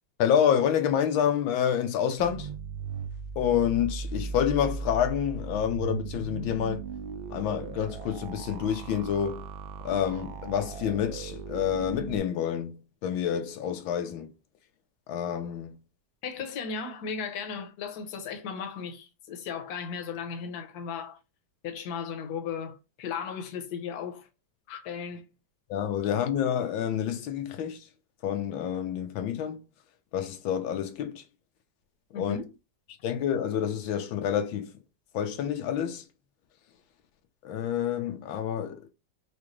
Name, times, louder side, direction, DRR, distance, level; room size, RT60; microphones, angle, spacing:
voice 1, 0.2-2.5 3.4-6.8 7.3-9.5 9.8-14.3 15.1-15.8 25.7-27.9 28.2-29.6 30.1-31.2 32.2-32.4 33.0-34.7 35.1-36.1 37.4-38.9, left 9 dB, 90° left, 1.5 m, -28 dB
sound 1, 2.2-12.2, right 5 dB, 90° right, 1.4 m, -37 dB
voice 2, 16.2-21.2 21.6-24.3 24.7-25.2 32.1-32.5, left 6 dB, 60° left, 1.2 m, -36 dB
4.8 x 2.5 x 3.1 m
omnidirectional pair, 2.1 m